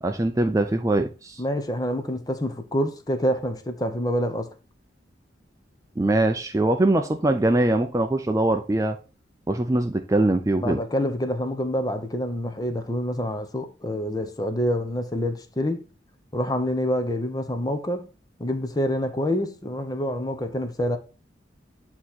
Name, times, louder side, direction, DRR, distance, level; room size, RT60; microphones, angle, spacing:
voice 1, 0.0-1.4 6.0-9.0 9.5-10.8, right 2 dB, 15° right, 0.4 m, -22 dB
voice 2, 1.4-4.5 10.6-15.8 16.3-18.1 18.4-21.0, equal, 20° left, 0.6 m, -27 dB
8.4 x 2.9 x 4.1 m
head